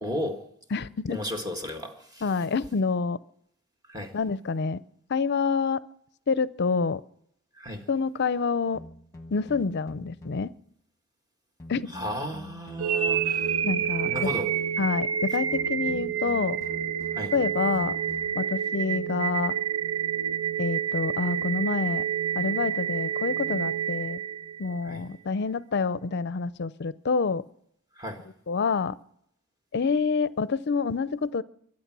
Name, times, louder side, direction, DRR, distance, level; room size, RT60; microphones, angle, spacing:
voice 1, 0.0-0.5 1.1-2.2 3.9-4.2 7.5-7.8 11.9-13.7 14.0-14.5 17.2-17.3 24.8-25.0 28.0-28.3, left 1 dB, 20° right, 1.8 m, -34 dB
voice 2, 0.7-1.2 2.2-3.2 4.1-4.8 5.1-5.8 6.3-7.0 7.9-8.8 9.3-10.5 11.7-11.9 13.6-14.3 14.8-16.6 17.3-18.0 18.3-19.5 20.6-22.1 22.4-24.2 24.6-27.4 28.5-29.0 29.7-31.4, left 4 dB, 55° left, 0.5 m, -27 dB
sound 1, 8.7-10.6 11.6-14.7 15.5-18.7, left 1 dB, 15° left, 1.4 m, -46 dB
sound 2, 12.8-24.8, right 8 dB, 85° right, 0.8 m, -28 dB
23.5 x 8.7 x 6.1 m
head